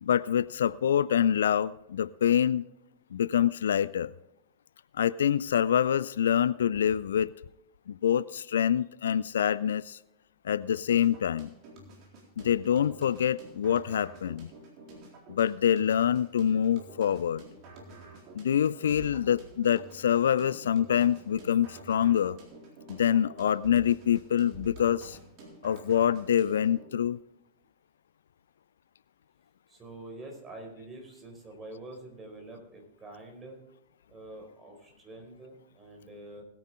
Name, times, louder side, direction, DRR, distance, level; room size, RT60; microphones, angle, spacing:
voice 1, 0.0-2.6 3.1-4.1 5.0-7.3 7.9-10.0 10.4-11.5 12.4-14.5 15.3-17.4 18.3-22.4 22.9-25.2 25.6-27.2, left 9 dB, 65° left, 0.3 m, -26 dB
sound 1, 10.9-26.9, right 2 dB, 40° right, 3.9 m, -49 dB
voice 2, 29.7-33.6 34.1-36.4, right 2 dB, 20° right, 4.9 m, -46 dB
20.5 x 9.4 x 3.6 m
figure-of-eight pair, 90°, 0 cm